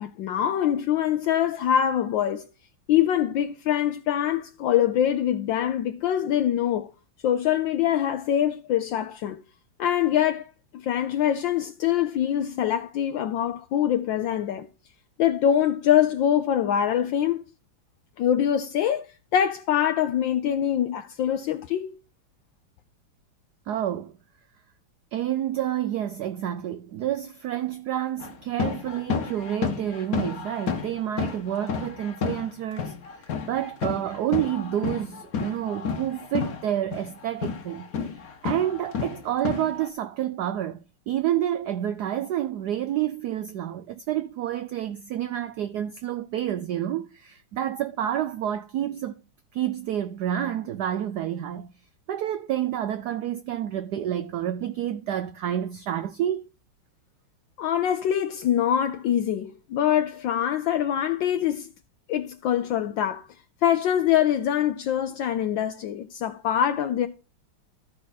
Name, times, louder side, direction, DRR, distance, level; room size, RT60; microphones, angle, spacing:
voice 1, 0.0-2.4 2.9-6.9 7.2-9.4 9.8-10.4 10.7-14.7 15.2-17.4 18.2-19.0 19.3-22.0 57.6-61.7 62.1-63.3 63.6-67.1, left 10 dB, 75° left, 1.2 m, -24 dB
voice 2, 23.7-24.1 25.1-32.9 33.5-37.9 38.4-40.8 41.1-49.2 49.5-51.7 52.1-56.5, right 11 dB, 80° right, 0.9 m, -29 dB
sound 1, 28.2-32.5 32.8-36.6 36.9-39.9, left 6 dB, 50° left, 1.3 m, -31 dB
13.5 x 4.8 x 4.1 m
omnidirectional pair, 2.3 m